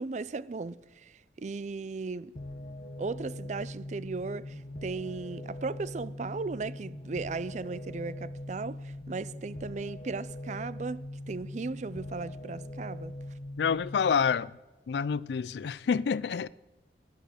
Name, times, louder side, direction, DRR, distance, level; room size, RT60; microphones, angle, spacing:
voice 1, 0.0-2.3 3.0-13.1, right 4 dB, 40° right, 0.4 m, -37 dB
sound 1, 2.4-14.4, left 1 dB, 50° left, 1.2 m, -41 dB
voice 2, 13.6-14.5 14.9-16.5, left 6 dB, 70° left, 0.4 m, -28 dB
11.5 x 10.5 x 8.0 m
head